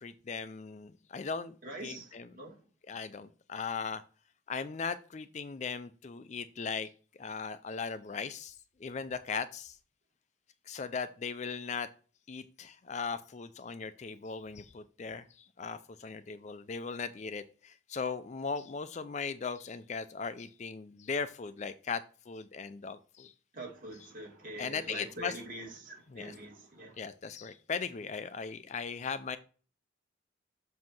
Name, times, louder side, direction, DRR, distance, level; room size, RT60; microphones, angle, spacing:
voice 1, 0.0-1.5 1.8-2.3 2.9-4.0 4.5-6.9 7.2-8.5 8.8-9.8 10.7-11.9 12.3-23.3 24.6-25.3 26.1-26.3 27.0-29.4, left 5 dB, 35° left, 0.4 m, -38 dB
voice 2, 1.6-2.6 23.5-27.0, right 1 dB, 45° right, 2.4 m, -44 dB
7.4 x 2.8 x 5.9 m
head